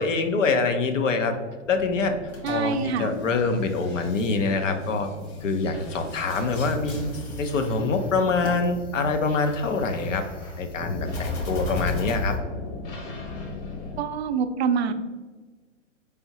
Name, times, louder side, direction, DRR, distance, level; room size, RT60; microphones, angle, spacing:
voice 1, 0.0-1.3 1.7-2.1 2.5-5.1 5.4-7.1 7.4-10.2 10.6-12.4, left 4 dB, 75° left, 7 dB, 0.7 m, -25 dB
sound 1, 1.6-14.0, left 3 dB, 30° left, 0.8 m, -41 dB
sound 2, 2.2-8.4 11.1-12.1, left 1 dB, 55° left, 1.5 m, -42 dB
voice 2, 2.4-3.1 14.0-14.9, right 6 dB, 60° right, 9 dB, 0.5 m, -25 dB
sound 3, 6.2-12.4, left 2 dB, 15° left, 0.4 m, -35 dB
4.5 x 3.5 x 2.8 m, 1.4 s
hypercardioid pair, 115°, 38 cm